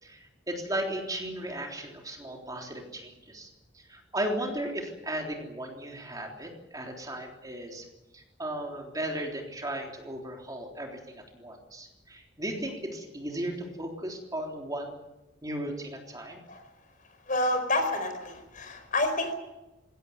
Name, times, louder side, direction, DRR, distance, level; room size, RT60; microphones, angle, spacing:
voice 1, 0.0-3.5 3.7-7.9 8.1-15.0 15.4-16.4, right 1 dB, 20° right, 1 dB, 3.5 m, -36 dB
voice 2, 17.3-19.3, left 2 dB, 45° left, 7 dB, 4.9 m, -28 dB
21.5 x 17.5 x 9.6 m, 1.0 s
head